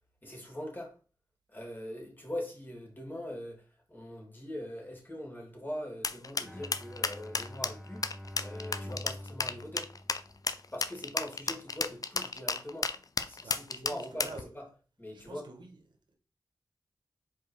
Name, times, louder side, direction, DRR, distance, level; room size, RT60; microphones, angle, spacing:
voice 1, 0.2-0.9 1.5-8.1 8.4-9.9 10.7-12.9 13.3-14.7 15.0-15.5, left 1 dB, 25° left, 3.1 m, -42 dB
sound 1, 6.0-14.4, left 4 dB, 50° left, 0.6 m, -32 dB
Bowed string instrument, 6.4-10.8, left 1 dB, 5° left, 1.3 m, -46 dB
voice 2, 13.4-14.5 15.1-15.8, right 2 dB, 85° right, 1.5 m, -48 dB
5.1 x 4.7 x 4.8 m
cardioid pair, 55°, 8 cm